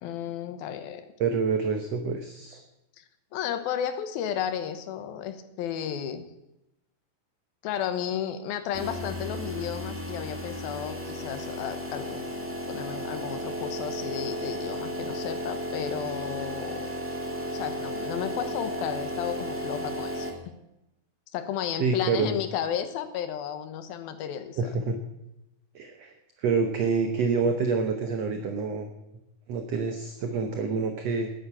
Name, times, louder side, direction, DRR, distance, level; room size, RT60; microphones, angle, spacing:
voice 1, 0.0-1.1 3.0-3.1 3.3-6.2 7.6-16.9 17.5-20.3 21.3-24.6, left 9 dB, 80° left, 9 dB, 3.0 m, -33 dB
voice 2, 1.2-2.6 21.8-22.3 24.6-25.0 25.7-28.9 29.5-31.3, right 5 dB, 65° right, 6 dB, 1.6 m, -27 dB
sound 1, 8.7-20.3, equal, 5° right, 0.9 m, -34 dB
12.0 x 10.5 x 8.6 m, 0.90 s
omnidirectional pair, 4.3 m